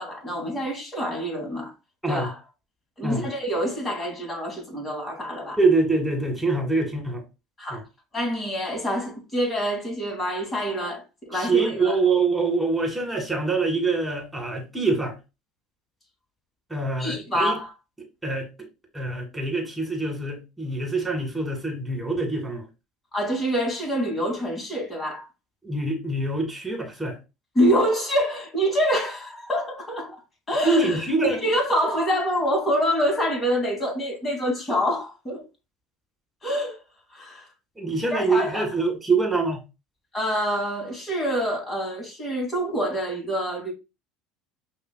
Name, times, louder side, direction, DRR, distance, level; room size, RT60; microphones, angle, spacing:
voice 1, 0.0-1.7 2.1-2.4 3.0-5.6 7.6-7.8 8.1-12.0 17.0-17.7 23.1-25.3 27.5-30.2 30.5-35.4 36.4-36.8 37.1-37.5 38.1-38.7 40.1-43.7, equal, 20° left, 2.1 m, -26 dB
voice 2, 5.6-7.2 7.7-7.8 11.3-15.1 16.7-17.6 18.2-18.5 18.9-22.6 25.6-27.2 30.6-31.5 37.8-39.6, right 3 dB, 5° right, 1.9 m, -24 dB
5.6 x 2.7 x 2.2 m
hypercardioid pair, 80°, 0 cm